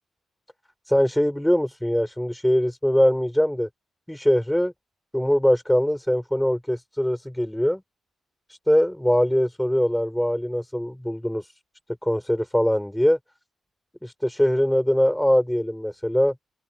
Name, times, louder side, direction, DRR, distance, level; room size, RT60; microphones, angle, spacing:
voice 1, 0.9-3.7 4.1-4.7 5.1-7.8 8.5-11.5 12.0-13.2 14.0-16.3, equal, 5° left, 3.0 m, -22 dB
cardioid pair, 105°, 0 cm